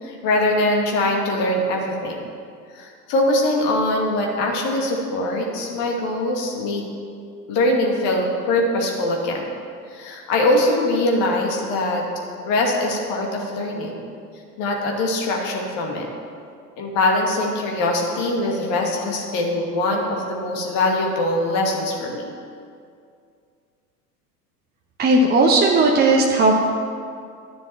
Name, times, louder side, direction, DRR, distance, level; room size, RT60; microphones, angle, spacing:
voice 1, 0.0-2.2 2.7-6.8 7.5-9.5 9.9-12.0 12.5-13.9 14.6-16.1 16.8-22.3, left 1 dB, 50° left, 0 dB, 2.4 m, -22 dB
voice 2, 25.0-26.5, right 2 dB, 20° right, 0 dB, 1.1 m, -16 dB
11.0 x 6.9 x 8.3 m, 2.3 s
figure-of-eight pair, 80°, 47 cm